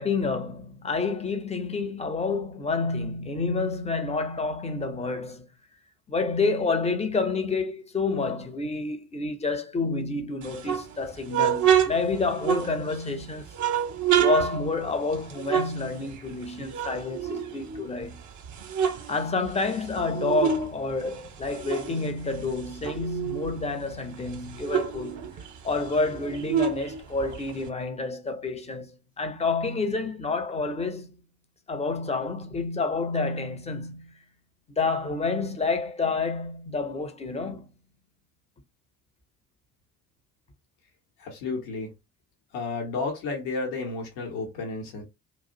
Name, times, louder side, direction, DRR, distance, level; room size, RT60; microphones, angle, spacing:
voice 1, 0.0-5.5 6.1-13.5 14.2-18.2 19.1-25.3 25.6-31.1 31.7-34.1 34.7-37.7, left 3 dB, 15° left, 0.5 m, -29 dB
sound 1, 10.4-13.1 13.5-16.4 16.7-18.0 18.4-20.7 21.0-23.6 23.9-24.0 24.3-27.7, right 8 dB, 40° right, 0.6 m, -28 dB
voice 2, 41.2-41.9 42.5-45.0, left 3 dB, 70° left, 0.9 m, -32 dB
2.3 x 2.0 x 2.6 m
hypercardioid pair, 50°, 46 cm